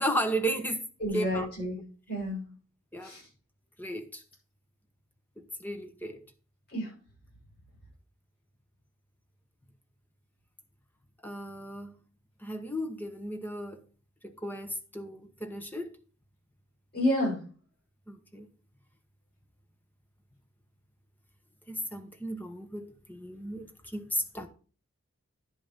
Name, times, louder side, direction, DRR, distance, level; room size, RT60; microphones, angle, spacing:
voice 1, 0.0-0.8 1.1-1.5 2.9-3.1 3.8-4.2 5.4-6.2 11.2-11.9 12.4-13.8 14.2-15.9 18.1-18.5 21.7-23.7 23.9-24.5, right 1 dB, 10° left, 0.9 m, -34 dB
voice 2, 1.0-1.8 2.1-2.5 3.0-3.2 6.7-6.9 16.9-17.4, left 1 dB, 45° left, 6.2 m, -29 dB
10.5 x 5.4 x 5.4 m
head